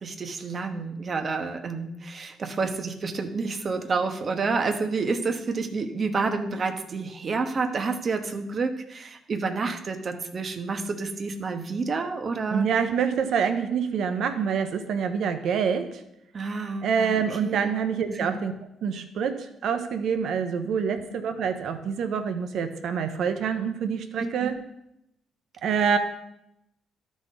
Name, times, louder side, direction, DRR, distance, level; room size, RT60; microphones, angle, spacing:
voice 1, 0.0-12.6 16.3-17.7 18.1-18.3 20.9-21.1 24.4-24.5, right 4 dB, 45° right, 7 dB, 0.9 m, -29 dB
voice 2, 12.5-16.0 16.8-18.5 18.8-24.6 25.6-26.0, right 6 dB, 70° right, 8 dB, 0.7 m, -26 dB
12.5 x 4.2 x 3.8 m, 0.81 s
cardioid pair, 90°, 0 cm